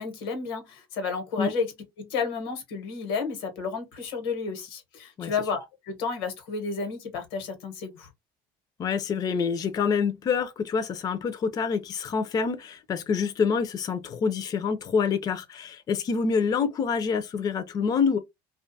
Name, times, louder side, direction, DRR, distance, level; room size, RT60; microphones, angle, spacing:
voice 1, 0.0-1.7 2.0-8.1, left 5 dB, 90° left, 1.0 m, -31 dB
voice 2, 8.8-18.2, left 6 dB, 35° left, 0.4 m, -26 dB
2.4 x 2.3 x 2.6 m
supercardioid pair, 105°, 12 cm